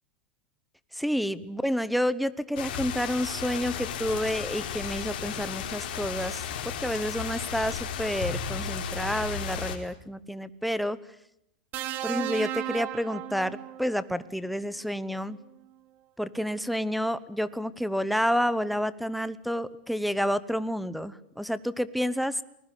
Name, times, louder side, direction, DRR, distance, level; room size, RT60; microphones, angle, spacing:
voice 1, 0.9-11.0 12.0-15.4 16.2-22.4, equal, ahead, 15 dB, 0.9 m, -29 dB
sound 1, 2.6-9.8, left 7 dB, 60° left, 4.6 m, -34 dB
sound 2, 11.7-14.0 15.3-15.5, right 13 dB, 35° right, 1.8 m, -34 dB
28.0 x 20.5 x 8.3 m, 0.79 s
supercardioid pair, 155°, 5 cm